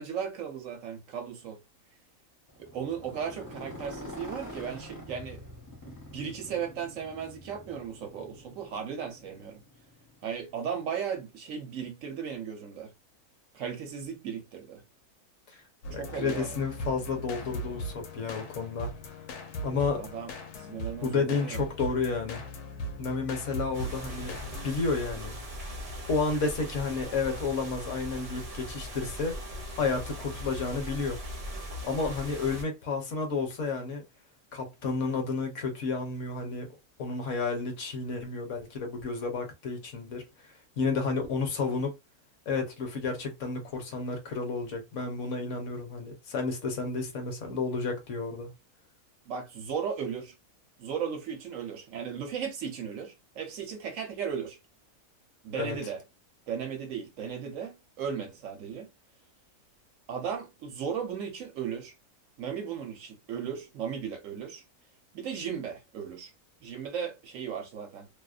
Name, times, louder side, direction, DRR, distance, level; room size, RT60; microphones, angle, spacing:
voice 1, 0.0-1.6 2.6-5.4 5.8-9.6 10.2-12.9 13.5-14.8 16.0-16.6 19.9-20.3 20.7-21.6 49.3-50.3 50.8-54.6 55.4-56.0 56.5-58.9 60.1-61.9 62.4-64.6 65.1-66.3 66.6-68.1, right 7 dB, 65° right, 1.0 m, -36 dB
Motorcycle, 2.5-10.5, left 1 dB, 20° left, 0.6 m, -46 dB
sound 1, 15.8-24.7, equal, 85° left, 1.1 m, -39 dB
voice 2, 15.9-18.9 19.6-20.0 21.0-22.4 23.0-24.4 24.6-25.4 26.1-29.4 29.8-31.2 31.8-34.0 34.5-36.7 37.0-40.2 40.8-41.9 42.5-48.5 55.6-55.8, left 4 dB, 60° left, 1.0 m, -31 dB
sound 2, 23.7-32.6, equal, 35° right, 0.6 m, -40 dB
2.7 x 2.0 x 2.4 m
omnidirectional pair, 1.6 m